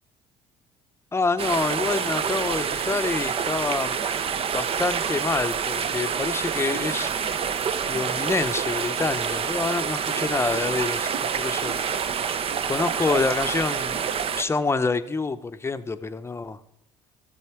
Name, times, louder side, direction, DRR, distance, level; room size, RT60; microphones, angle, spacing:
voice 1, 1.1-4.0 4.5-7.1 7.9-11.1 11.4-11.8 12.7-14.0 14.4-16.6, left 3 dB, 20° left, 11 dB, 0.7 m, -27 dB
sound 1, 1.4-14.4, right 7 dB, 45° right, 0.6 m, -27 dB
13.5 x 7.0 x 4.5 m, 0.83 s
supercardioid pair, 70°, 14 cm